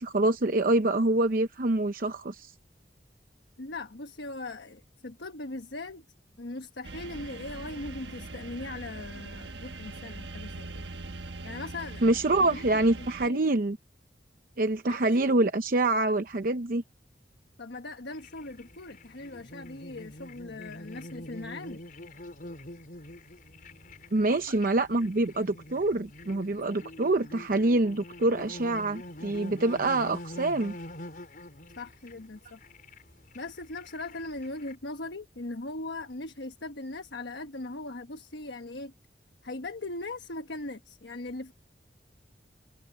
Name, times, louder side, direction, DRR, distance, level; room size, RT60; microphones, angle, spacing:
voice 1, 0.0-2.5 12.0-13.8 14.6-16.8 24.1-30.8, right 2 dB, 55° right, 0.8 m, -26 dB
voice 2, 3.6-6.0 6.4-10.8 11.4-12.0 12.5-12.7 13.0-13.4 14.8-15.2 17.6-21.8 24.3-24.6 31.8-32.6 33.3-38.9 39.4-41.5, left 2 dB, 90° left, 1.3 m, -39 dB
sound 1, 6.8-13.3, right 2 dB, 90° right, 1.3 m, -42 dB
sound 2, 18.1-34.7, left 1 dB, 55° left, 4.7 m, -45 dB
head